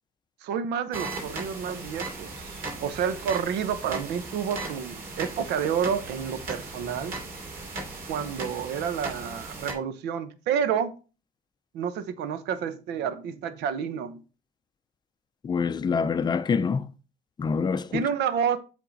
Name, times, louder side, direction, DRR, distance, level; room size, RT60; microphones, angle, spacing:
voice 1, 0.4-7.1 8.1-10.9 11.7-14.2 17.9-18.6, right 7 dB, 85° right, 0.9 m, -29 dB
sound 1, 0.9-9.7, right 3 dB, 60° right, 2.8 m, -37 dB
voice 2, 15.4-16.9 17.4-18.1, left 5 dB, 25° left, 0.5 m, -26 dB
7.6 x 3.8 x 4.0 m
cardioid pair, 110°, 17 cm